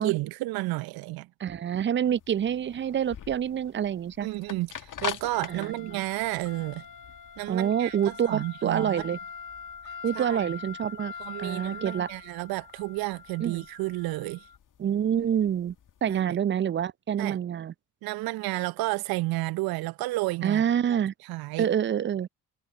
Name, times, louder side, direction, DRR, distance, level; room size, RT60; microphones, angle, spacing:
voice 1, 0.0-1.3 4.2-6.8 7.4-9.1 9.8-10.5 11.2-14.5 16.1-16.4 17.2-17.4 18.0-20.6 21.2-21.7, right 20 dB, 60° right, 0.7 m, -31 dB
voice 2, 1.4-4.3 5.6-5.7 7.5-9.2 10.0-11.1 11.4-12.1 13.4-13.6 14.8-15.7 16.0-17.7 20.4-21.1 21.6-22.3, right 9 dB, 30° right, 0.5 m, -27 dB
sound 1, 2.1-16.2, left 7 dB, 50° left, 1.9 m, -42 dB
hypercardioid pair, 45°, 41 cm